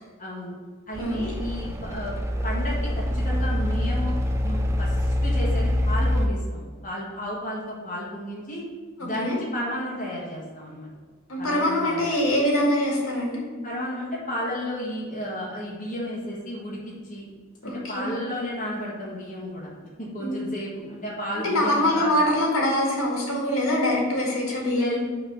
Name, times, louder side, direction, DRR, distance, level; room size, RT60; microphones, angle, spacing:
voice 1, 0.2-0.5 0.9-8.6 9.0-10.9 11.4-12.1 13.6-16.8 17.0-17.3 17.6-19.7 20.0-22.1 24.7-25.0, equal, 35° left, -6 dB, 1.5 m, -33 dB
sound 1, 0.9-6.3, left 1 dB, 15° right, 0.5 m, -25 dB
voice 2, 9.0-9.4 11.3-13.4 17.6-18.1 20.2-20.5 21.4-25.0, left 1 dB, 75° left, -3 dB, 1.9 m, -24 dB
5.7 x 3.9 x 6.1 m, 1.5 s
head